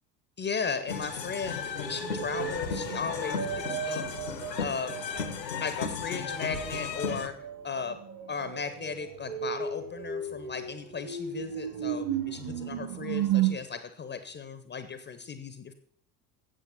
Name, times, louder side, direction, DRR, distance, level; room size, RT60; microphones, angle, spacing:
voice 1, 0.4-4.0 4.6-5.0 5.6-7.3 7.6-8.0 8.3-15.7, left 5 dB, 20° left, 11 dB, 0.8 m, -36 dB
sound 1, 0.9-7.3, left 6 dB, 75° left, 1.2 m, -35 dB
sound 2, 1.7-5.4 6.5-13.5, right 9 dB, 55° right, 2.7 m, -34 dB
9.0 x 7.8 x 5.9 m, 0.63 s
figure-of-eight pair, 65°, 50 cm